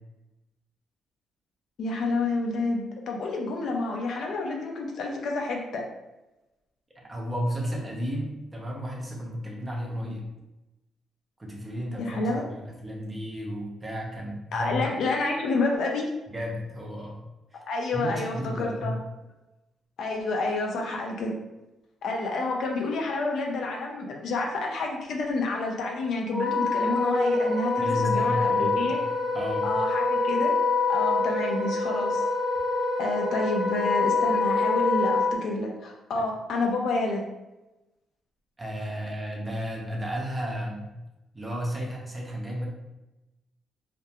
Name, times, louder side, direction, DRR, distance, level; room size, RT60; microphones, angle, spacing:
voice 1, 1.8-5.8 12.0-12.4 14.5-16.1 17.7-19.0 20.0-21.3 22.0-29.0 29.6-30.5 30.9-32.3 33.0-37.2, left 2 dB, 65° left, 0 dB, 0.4 m, -29 dB
voice 2, 7.0-10.3 11.4-12.3 12.6-14.9 16.3-17.2 17.5-17.6 17.9-18.9 27.8-29.0 29.3-29.7 36.1-36.2 38.6-40.9 41.3-42.7, equal, 15° right, -2 dB, 0.5 m, -33 dB
Wind instrument woodwind instrument, 26.3-35.3, left 3 dB, 35° left, 0.7 m, -25 dB
2.3 x 2.1 x 2.7 m, 1.0 s
cardioid pair, 135°, 0 cm